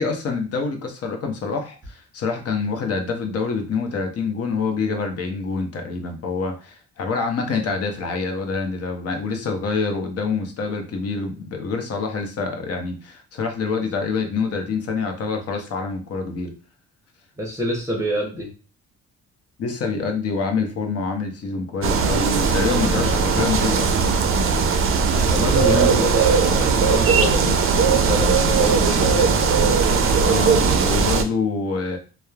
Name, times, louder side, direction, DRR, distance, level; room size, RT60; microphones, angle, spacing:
voice 1, 0.0-16.5 19.6-23.9 25.5-26.1 30.3-32.0, left 4 dB, 50° left, 4 dB, 0.7 m, -26 dB
voice 2, 17.4-18.5 25.1-29.4, right 1 dB, 10° right, -2 dB, 0.8 m, -26 dB
sound 1, 21.8-31.2, right 5 dB, 45° right, 0.4 m, -19 dB
3.0 x 2.0 x 2.3 m, 0.35 s
cardioid pair, 90°, 30 cm